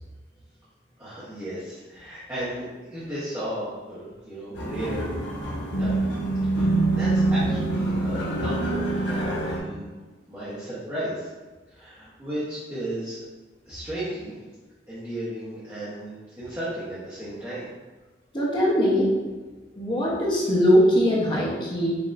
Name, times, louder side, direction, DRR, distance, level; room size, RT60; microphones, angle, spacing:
voice 1, 1.0-5.1 5.7-6.1 6.4-6.7 7.0-9.9 10.3-11.3 11.7-13.2 13.6-14.3 14.9-16.1 16.4-17.7, right 1 dB, 15° right, -13 dB, 1.1 m, -34 dB
sound 1, 4.5-9.6, right 2 dB, 75° left, 1.1 m, -25 dB
voice 2, 18.3-19.1 19.8-22.0, equal, 25° left, -5 dB, 0.9 m, -21 dB
6.0 x 2.9 x 2.6 m, 1.3 s
head